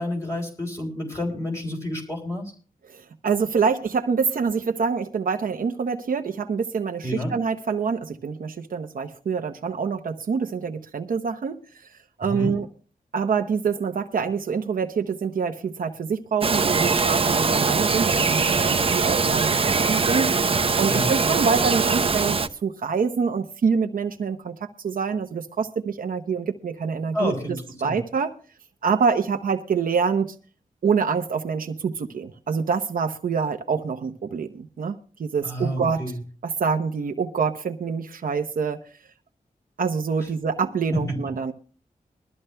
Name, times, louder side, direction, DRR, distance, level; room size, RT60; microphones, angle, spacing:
voice 1, 0.0-2.5 7.0-7.3 12.3-12.5 20.9-21.1 27.1-28.0 35.4-36.1 41.1-41.2, equal, 20° left, 3.7 m, -29 dB
voice 2, 2.9-11.9 12.2-12.7 13.1-20.4 20.8-28.3 28.8-30.3 30.8-36.0 36.4-38.8 39.8-41.5, right 5 dB, 75° right, 0.8 m, -26 dB
Bird vocalization bird call bird song, 16.4-22.5, right 4 dB, 40° right, 0.7 m, -22 dB
22.0 x 13.5 x 2.2 m
wide cardioid pair, 120°, 15 cm